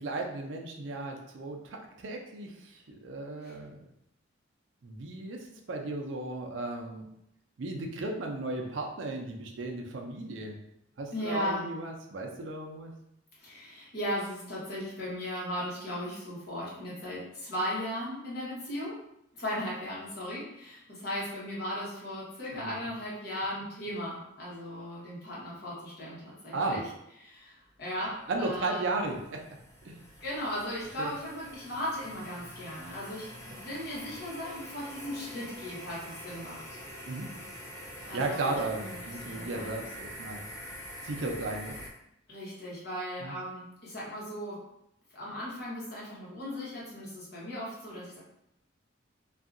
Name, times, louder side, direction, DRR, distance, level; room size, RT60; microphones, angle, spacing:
voice 1, 0.0-3.8 4.8-7.1 7.6-10.6 11.0-12.9 22.5-22.7 26.5-26.8 28.3-29.4 29.8-30.0 31.0-31.1 37.1-37.3 38.1-40.4 41.0-41.8 43.2-43.3, right 2 dB, 70° right, 2 dB, 0.5 m, -35 dB
voice 2, 11.1-11.7 13.4-19.0 19.3-26.8 27.2-29.0 30.2-36.6 38.1-39.8 42.3-44.6 45.1-48.2, equal, 55° left, -7 dB, 1.1 m, -37 dB
sound 1, 28.0-41.9, equal, 10° left, 0.5 m, -45 dB
2.7 x 2.4 x 2.5 m, 0.80 s
head